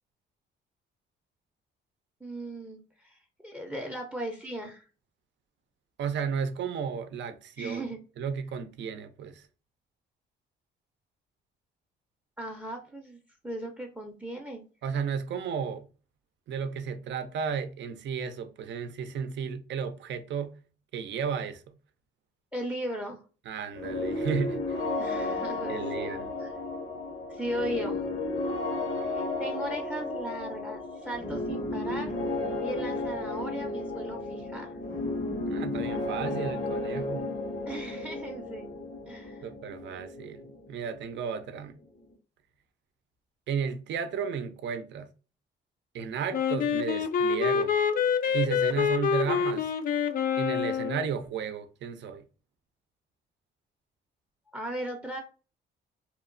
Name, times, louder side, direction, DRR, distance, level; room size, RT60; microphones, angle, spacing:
voice 1, 2.2-4.9 7.6-8.0 12.4-13.2 13.4-14.6 22.5-23.2 25.0-26.5 27.3-28.1 29.0-32.1 32.6-34.8 37.7-38.7 39.1-39.4 54.5-55.2, right 1 dB, 5° right, 0.6 m, -37 dB
voice 2, 6.0-7.9 8.2-9.5 14.8-15.9 16.5-20.5 20.9-21.7 23.5-25.0 25.7-26.3 35.5-37.3 39.4-41.8 43.5-45.1 45.9-47.7 48.3-49.7 50.4-52.2, right 7 dB, 65° right, 0.5 m, -33 dB
sound 1, 23.7-41.4, left 2 dB, 85° left, 1.4 m, -33 dB
Wind instrument woodwind instrument, 46.3-51.1, left 6 dB, 45° left, 0.4 m, -26 dB
2.9 x 2.0 x 2.4 m
cardioid pair, 90°, 20 cm